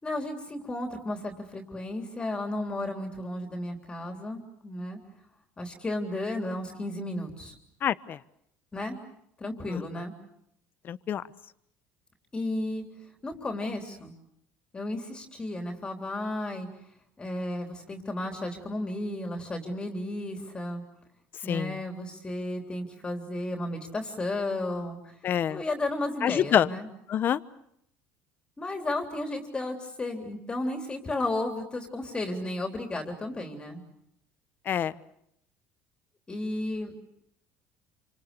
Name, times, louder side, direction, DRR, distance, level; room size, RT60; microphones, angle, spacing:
voice 1, 0.0-5.0 5.6-7.5 8.7-9.0 9.4-10.1 12.3-12.8 13.2-14.1 14.7-16.7 17.2-20.8 21.4-25.0 25.5-26.9 28.6-33.8 36.3-36.9, left 1 dB, 20° left, 3 dB, 3.4 m, -33 dB
voice 2, 7.8-8.2 9.7-9.8 10.8-11.2 21.4-21.8 25.2-25.6 26.2-26.7 27.1-27.4 34.7-34.9, left 9 dB, 40° left, 15 dB, 1.0 m, -26 dB
28.0 x 26.0 x 6.7 m, 0.74 s
cardioid pair, 120°, 5 cm